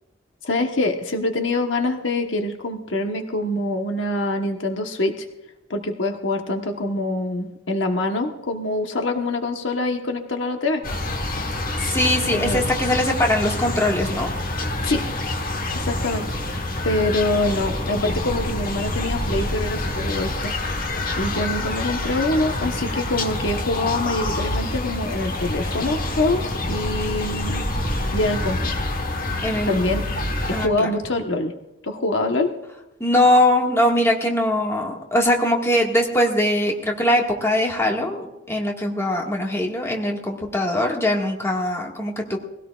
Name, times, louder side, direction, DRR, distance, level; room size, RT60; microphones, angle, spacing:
voice 1, 0.4-5.3 5.7-10.8 12.3-12.6 14.8-15.0 15.7-20.9 21.1-27.6 28.1-28.7 29.7-30.0 30.5-31.5 31.8-32.5, left 2 dB, 65° left, 4 dB, 1.3 m, -25 dB
sound 1, 10.8-30.7, left 1 dB, 45° left, 1.3 m, -27 dB
voice 2, 11.8-14.3 29.4-29.7 30.5-30.9 33.0-42.4, left 1 dB, 15° left, -1 dB, 1.8 m, -21 dB
21.5 x 17.0 x 2.5 m, 0.96 s
head